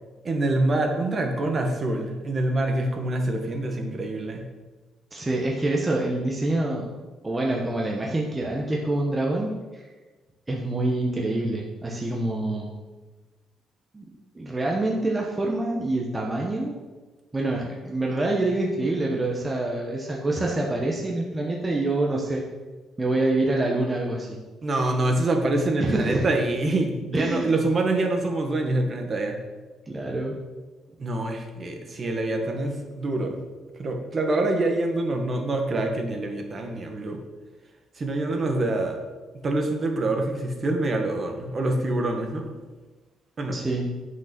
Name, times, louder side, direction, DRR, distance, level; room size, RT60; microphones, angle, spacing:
voice 1, 0.2-4.4 24.6-29.4 31.0-33.4 33.8-37.2 38.0-39.0 39.4-42.5 43.4-43.6, right 2 dB, 35° right, 3 dB, 1.4 m, -25 dB
voice 2, 5.1-7.0 7.2-9.8 10.5-12.7 13.9-14.0 14.3-16.8 17.3-22.4 23.0-24.4 25.8-26.3 27.1-27.5 29.9-30.4 43.5-43.9, right 2 dB, 15° right, -2 dB, 1.1 m, -26 dB
8.4 x 6.4 x 6.0 m, 1.2 s
cardioid pair, 135°, 0 cm